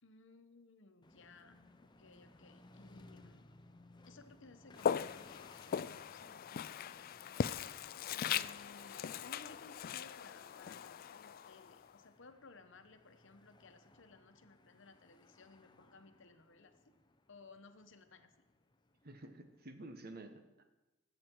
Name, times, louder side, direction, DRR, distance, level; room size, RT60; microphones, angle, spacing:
voice 1, 0.0-3.5 4.0-7.8 8.1-16.9 17.3-18.3, left 3 dB, 65° left, 8 dB, 1.1 m, -60 dB
sound 1, 1.0-19.6, left 2 dB, 20° left, 0.7 m, -63 dB
Walk footsteps, 4.8-11.9, left 8 dB, 45° left, 0.3 m, -40 dB
voice 2, 19.0-20.6, right 2 dB, 50° right, 7 dB, 1.2 m, -51 dB
21.0 x 7.9 x 4.6 m, 1.0 s
head